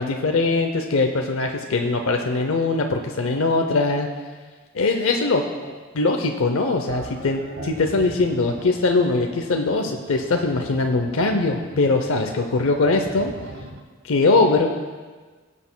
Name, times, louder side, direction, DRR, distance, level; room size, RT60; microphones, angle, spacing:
voice 1, 0.0-4.1 4.7-5.5 5.9-13.3 14.0-14.7, left 3 dB, 75° left, 3 dB, 0.6 m, -21 dB
sound 1, 6.9-13.8, right 1 dB, 70° right, 1.0 m, -40 dB
18.0 x 8.3 x 2.2 m, 1.4 s
head